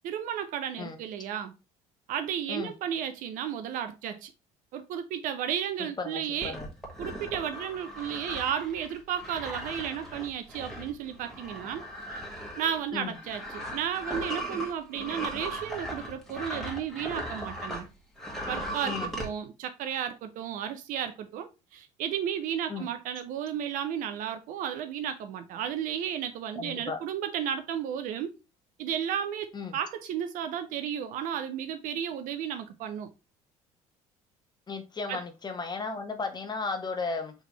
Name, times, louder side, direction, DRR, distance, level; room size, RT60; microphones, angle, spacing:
voice 1, 0.0-1.5 2.1-4.3 4.7-6.6 7.0-11.8 12.1-12.2 12.6-17.9 18.5-28.3 28.8-33.1 35.1-35.2, right 9 dB, 50° right, 0.6 m, -33 dB
voice 2, 5.8-6.7 12.9-13.2 18.9-19.1 22.7-22.9 26.5-27.0 29.5-29.8 34.7-37.3, left 4 dB, 25° left, 1.0 m, -35 dB
sound 1, 6.4-17.9 18.2-19.3, equal, ahead, 1.6 m, -38 dB
4.8 x 3.4 x 3.0 m
figure-of-eight pair, 55°, 18 cm